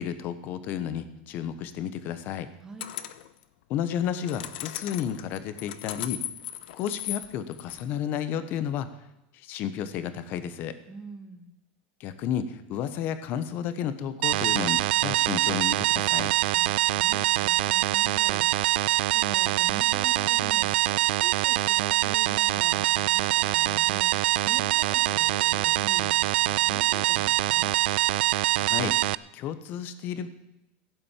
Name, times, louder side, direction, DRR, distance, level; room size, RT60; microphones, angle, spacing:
voice 1, 0.0-2.5 3.7-6.2 6.7-8.9 9.3-10.8 12.0-16.3 28.6-29.0 29.3-30.3, left 9 dB, 35° left, 12 dB, 1.1 m, -32 dB
sound 1, 2.8-3.3 4.0-7.9, left 13 dB, 70° left, 1.0 m, -37 dB
voice 2, 10.9-11.5 16.5-27.8, right 2 dB, 10° right, 3 dB, 1.9 m, -45 dB
sound 2, 14.2-29.1, right 18 dB, 70° right, 0.4 m, -24 dB
16.0 x 8.5 x 7.4 m, 0.88 s
supercardioid pair, 170°, 6 cm